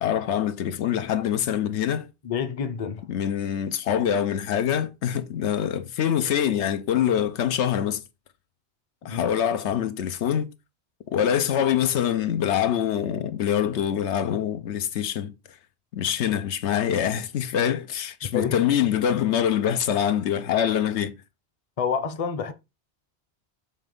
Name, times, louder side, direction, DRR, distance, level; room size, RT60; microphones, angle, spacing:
voice 1, 0.0-2.1 3.1-8.0 9.0-10.5 11.1-15.3 15.9-21.1, left 9 dB, 85° left, 1.0 m, -24 dB
voice 2, 2.2-3.0 9.1-9.3 18.3-18.6 21.8-22.5, left 6 dB, 40° left, 0.7 m, -28 dB
7.1 x 3.2 x 5.3 m
omnidirectional pair, 1.1 m